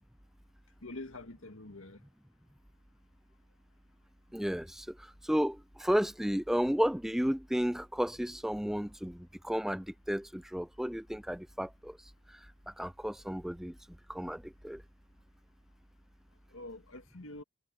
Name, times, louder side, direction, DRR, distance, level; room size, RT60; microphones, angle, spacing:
voice 1, 0.8-2.0 16.5-17.4, left 2 dB, 70° left, 2.2 m, -45 dB
voice 2, 4.3-4.8 5.3-5.6 5.8-9.2 9.4-11.9 12.8-13.7 14.1-14.4 14.6-14.8, equal, ahead, 0.3 m, -32 dB
head